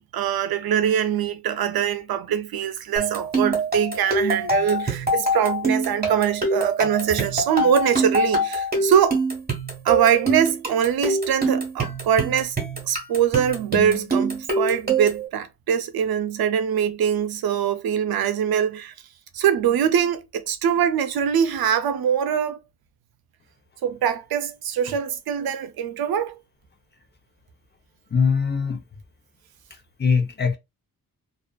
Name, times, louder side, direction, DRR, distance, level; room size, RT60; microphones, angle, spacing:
voice 1, 0.0-9.2 9.8-12.6 12.9-18.9 19.3-22.6 23.8-26.4, right 8 dB, 85° right, 0.5 m, -23 dB
sound 1, 3.0-15.3, right 2 dB, 25° right, 1.1 m, -25 dB
voice 2, 28.1-28.8 30.0-30.6, left 5 dB, 30° left, 0.6 m, -21 dB
2.4 x 2.4 x 2.2 m
wide cardioid pair, 100°, 36 cm